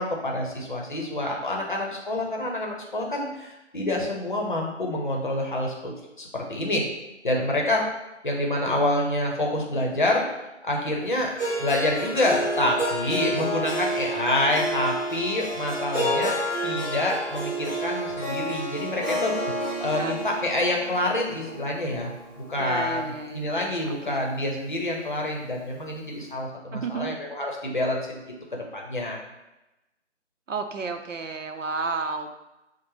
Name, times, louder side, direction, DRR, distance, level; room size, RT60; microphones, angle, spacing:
voice 1, 0.0-5.9 6.2-6.8 7.2-7.8 8.2-10.2 10.6-11.3 11.6-22.1 22.5-23.0 23.3-28.2 28.5-29.2, left 1 dB, 40° left, -1 dB, 0.7 m, -27 dB
Harp, 11.4-23.5, right 1 dB, 10° left, 1.1 m, -30 dB
voice 2, 22.6-24.3 26.7-27.2 30.5-32.3, right 4 dB, 85° right, 6 dB, 0.6 m, -32 dB
5.6 x 2.1 x 3.1 m, 0.99 s
figure-of-eight pair, 155°, 37 cm